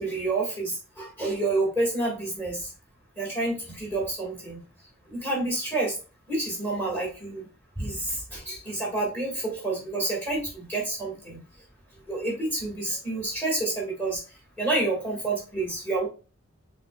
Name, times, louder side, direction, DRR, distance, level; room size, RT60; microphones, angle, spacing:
voice 1, 0.0-2.7 3.2-4.6 5.1-5.9 6.3-7.5 7.8-11.4 12.1-14.2 14.6-16.1, right 2 dB, 10° left, -2 dB, 1.9 m, -29 dB
5.7 x 3.9 x 2.3 m, 0.33 s
head